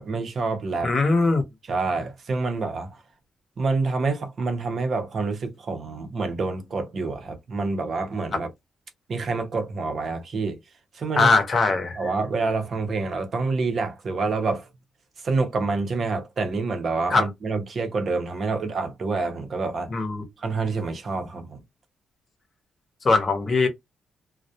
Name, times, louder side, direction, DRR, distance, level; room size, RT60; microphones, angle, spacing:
voice 1, 0.0-0.9 1.7-2.9 3.6-8.5 9.1-10.6 10.9-11.3 12.0-14.7 15.2-19.9 20.4-21.6, right 3 dB, 45° right, 0.6 m, -27 dB
voice 2, 0.8-1.4 8.3-8.4 11.1-12.0 17.1-17.3 19.9-20.2 23.0-23.7, left 3 dB, 30° left, 0.7 m, -20 dB
2.3 x 2.1 x 2.7 m
cardioid pair, 150°, 0 cm